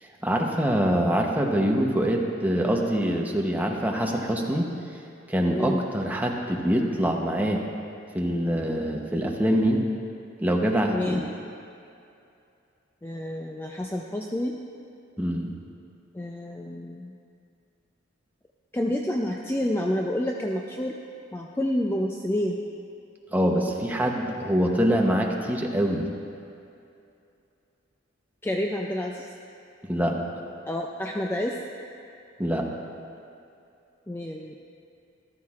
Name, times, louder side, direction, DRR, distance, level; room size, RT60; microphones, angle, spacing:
voice 1, 0.2-4.7 5.3-7.6 8.1-9.8 10.4-11.2 15.2-15.6 23.3-26.1 29.8-30.2 32.4-32.7, equal, 10° right, 0 dB, 0.8 m, -24 dB
voice 2, 5.5-5.9 10.9-11.3 13.0-14.6 16.1-17.2 18.7-21.0 21.3-22.6 28.4-29.3 30.6-31.6 34.1-34.6, left 1 dB, 10° left, 0 dB, 0.4 m, -29 dB
13.5 x 13.0 x 2.4 m, 2.6 s
head